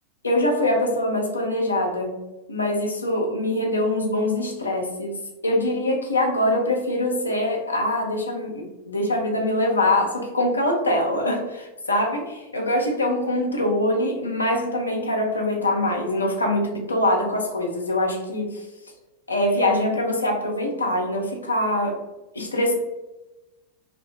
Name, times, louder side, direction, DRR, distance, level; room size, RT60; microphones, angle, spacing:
voice 1, 0.2-2.2 2.5-5.2 5.4-18.7 19.3-22.0 22.3-22.7, left 1 dB, 80° left, 1 dB, 0.6 m, -23 dB
2.8 x 2.0 x 3.1 m, 1.0 s
figure-of-eight pair, 90°, 0 cm